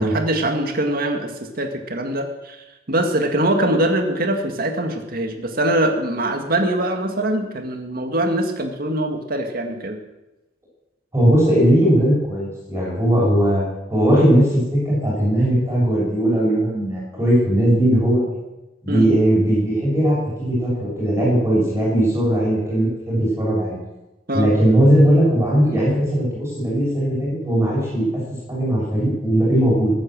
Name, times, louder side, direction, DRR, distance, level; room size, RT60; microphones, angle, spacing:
voice 1, 0.0-10.0 18.9-19.1 24.3-24.5, right 1 dB, 50° right, 5 dB, 1.9 m, -23 dB
voice 2, 11.1-13.6 13.9-18.3 18.8-23.8 24.3-28.1 28.5-29.9, right 1 dB, 15° right, -6 dB, 6.6 m, -18 dB
15.0 x 9.5 x 7.6 m, 1.0 s
head